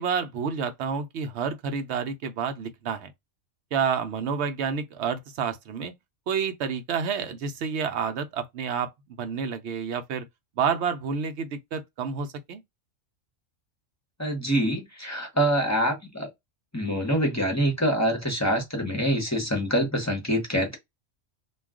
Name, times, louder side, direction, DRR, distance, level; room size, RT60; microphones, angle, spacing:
voice 1, 0.0-3.1 3.7-5.9 6.3-8.9 9.2-10.2 10.6-12.6, right 6 dB, 65° right, 0.8 m, -29 dB
voice 2, 14.2-16.3 16.7-20.7, equal, 15° left, 0.7 m, -25 dB
2.3 x 2.3 x 3.5 m
omnidirectional pair, 1.4 m